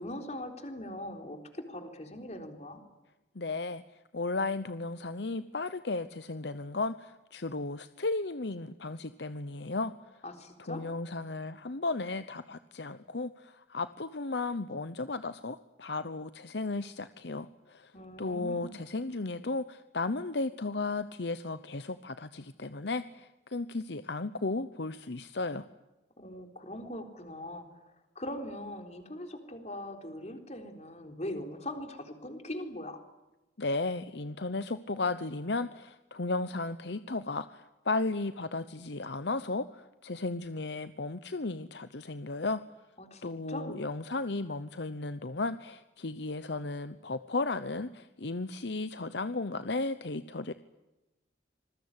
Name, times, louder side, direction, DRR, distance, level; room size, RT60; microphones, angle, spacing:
voice 1, 0.0-2.8 10.2-10.9 17.9-18.8 26.2-27.7 28.2-33.0 43.0-43.8, left 1 dB, 35° left, 6 dB, 3.9 m, -41 dB
voice 2, 3.3-3.8 4.1-9.9 10.7-17.9 18.2-25.7 33.6-42.6 43.2-50.5, left 3 dB, 65° left, 12 dB, 0.9 m, -34 dB
27.0 x 21.5 x 9.8 m, 1.0 s
head